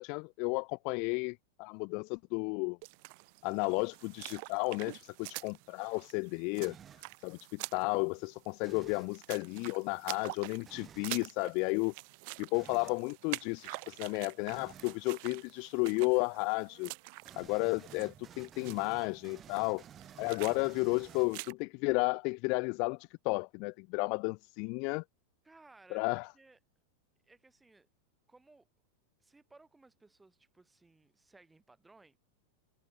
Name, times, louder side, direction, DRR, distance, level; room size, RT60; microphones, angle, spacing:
voice 1, 0.0-2.8 3.4-6.8 7.2-11.9 12.4-16.9 17.4-19.8 20.2-25.0 25.9-26.3, left 33 dB, 45° left, 0.3 m, -33 dB
sound 1, 2.8-21.5, right 33 dB, 45° right, 3.4 m, -47 dB
sound 2, 6.6-7.1 8.6-9.2 10.6-11.1 12.5-13.0 14.5-15.0 17.2-21.6, right 9 dB, 25° right, 1.5 m, -54 dB
voice 2, 25.4-26.0 26.3-26.6 27.2-27.9 28.3-28.7 29.2-32.2, right 3 dB, 10° right, 5.6 m, -61 dB
figure-of-eight pair, 90°, 0 cm